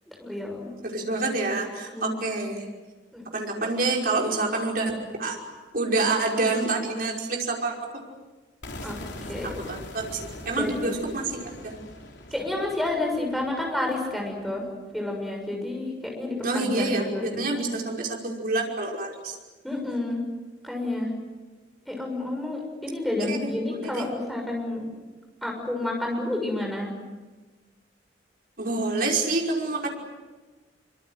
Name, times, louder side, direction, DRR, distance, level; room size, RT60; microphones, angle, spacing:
voice 1, 0.1-0.7 1.9-2.1 3.1-3.2 3.6-3.8 8.8-9.0 9.3-9.5 10.6-11.0 12.3-14.6 14.9-17.8 19.6-20.2 20.6-21.1 21.9-24.8 25.4-26.9, left 2 dB, ahead, 1 dB, 6.8 m, -30 dB
voice 2, 0.8-2.7 3.3-5.4 5.7-7.7 9.4-11.7 16.4-19.4 23.3-24.1 28.6-29.9, right 3 dB, 55° right, -1 dB, 5.5 m, -27 dB
sound 1, 8.6-14.5, left 1 dB, 75° left, 3.5 m, -42 dB
25.5 x 25.0 x 8.0 m, 1.3 s
head